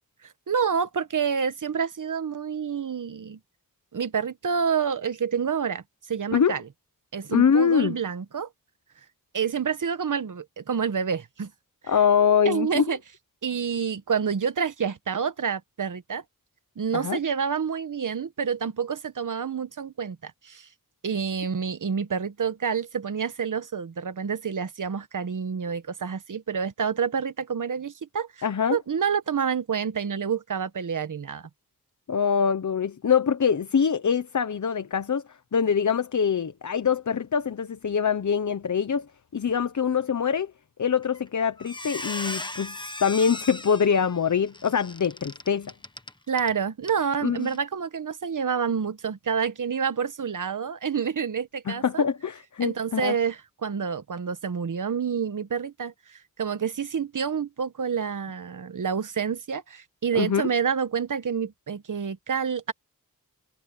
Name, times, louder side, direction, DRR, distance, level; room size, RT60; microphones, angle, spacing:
voice 1, 0.2-3.4 3.9-5.8 6.1-6.6 7.1-8.5 9.3-11.5 11.8-11.9 12.4-13.0 13.4-16.2 16.8-20.7 21.0-31.5 46.3-52.0 52.6-62.7, right 6 dB, 60° right, 1.3 m, -28 dB
voice 2, 7.3-8.0 11.9-12.8 16.9-17.2 28.4-28.8 32.1-39.1 39.3-40.5 40.8-45.7 47.2-47.5 51.7-53.1 60.1-60.4, left 7 dB, 55° left, 1.0 m, -24 dB
Squeak, 41.0-41.3 41.6-46.5 46.8-47.0 47.4-47.6, left 2 dB, 15° left, 1.1 m, -37 dB
wide cardioid pair, 115°, 36 cm